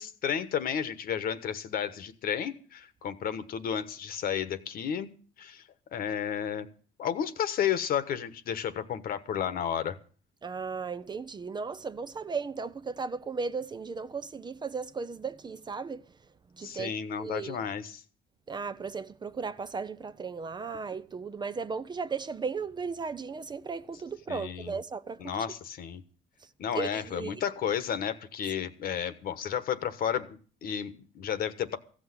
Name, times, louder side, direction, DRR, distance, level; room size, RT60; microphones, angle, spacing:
voice 1, 0.0-5.1 5.4-5.6 5.9-6.7 7.0-10.0 16.6-18.0 24.3-24.8 25.2-26.0 26.6-31.8, left 8 dB, 60° left, 1.3 m, -32 dB
voice 2, 10.4-16.0 16.6-16.9 17.2-17.6 18.5-25.2 26.7-27.3, right 5 dB, 25° right, 0.6 m, -36 dB
15.5 x 6.4 x 9.6 m
cardioid pair, 110°, 17 cm